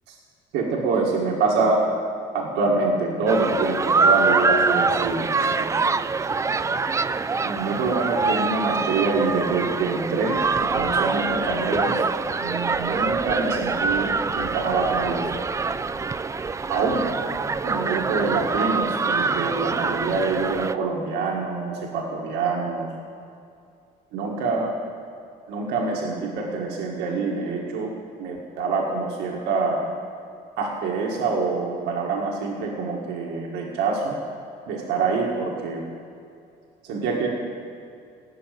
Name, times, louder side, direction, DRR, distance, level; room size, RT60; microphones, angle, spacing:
voice 1, 0.5-1.8 2.3-5.8 7.4-12.1 12.4-15.2 16.7-17.0 17.6-22.9 24.1-24.7 25.5-27.9 28.2-29.9 30.6-34.2 34.7-35.8 36.8-37.3, right 4 dB, 90° right, -1 dB, 1.7 m, -25 dB
sound 1, 3.3-20.7, right 4 dB, 20° right, 0.4 m, -24 dB
17.0 x 6.2 x 9.2 m, 2.5 s
cardioid pair, 110°, 17 cm